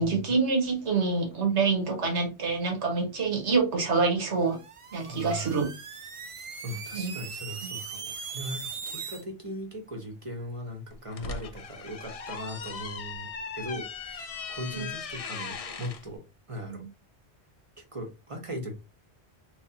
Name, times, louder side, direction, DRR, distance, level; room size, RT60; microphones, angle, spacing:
voice 1, 0.0-4.6 4.9-5.7 6.9-7.1 14.7-14.9, right 4 dB, 85° right, 1.5 m, -26 dB
sound 1, 4.4-9.2, right 6 dB, 50° right, 0.3 m, -40 dB
voice 2, 5.1-5.6 6.6-16.2 16.5-16.8 17.8-18.7, equal, 30° right, 0.8 m, -39 dB
sound 2, 10.9-16.0, left 5 dB, 55° left, 0.4 m, -38 dB
3.5 x 3.1 x 2.7 m
omnidirectional pair, 1.2 m